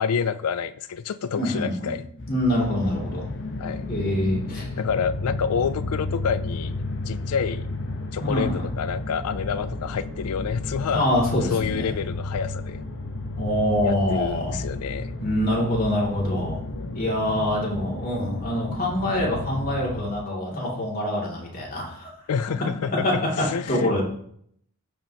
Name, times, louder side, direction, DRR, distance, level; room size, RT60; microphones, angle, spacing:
voice 1, 0.0-2.0 3.6-3.9 4.8-6.7 7.1-7.7 8.1-12.8 13.8-15.2 16.7-17.1 22.3-23.1 23.4-24.0, left 6 dB, 85° left, 13 dB, 0.4 m, -28 dB
voice 2, 1.4-1.9 2.3-3.3 3.9-4.7 8.2-8.6 10.9-11.9 13.4-14.6 15.2-16.6 16.9-22.1 23.0-24.0, left 1 dB, 40° left, -4 dB, 2.8 m, -25 dB
sound 1, 2.2-20.1, left 2 dB, 55° left, 1.1 m, -33 dB
15.0 x 5.2 x 3.0 m, 0.66 s
head